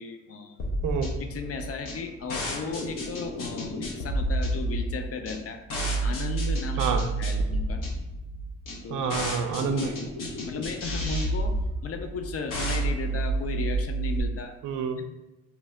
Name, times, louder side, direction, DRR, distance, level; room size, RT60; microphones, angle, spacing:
voice 1, 0.0-0.7 1.3-5.6 6.0-6.9 7.2-7.9 8.8-9.1 9.7-9.9 10.4-14.5 15.0-15.1, left 5 dB, 45° left, 5 dB, 0.5 m, -35 dB
sound 1, 0.6-14.2, right 2 dB, 65° left, 0.8 m, -30 dB
voice 2, 0.8-1.1 6.8-7.1 8.9-10.0 14.6-15.0, right 6 dB, 65° right, 7 dB, 0.5 m, -28 dB
2.9 x 2.0 x 3.3 m, 0.97 s
hypercardioid pair, 40°, 34 cm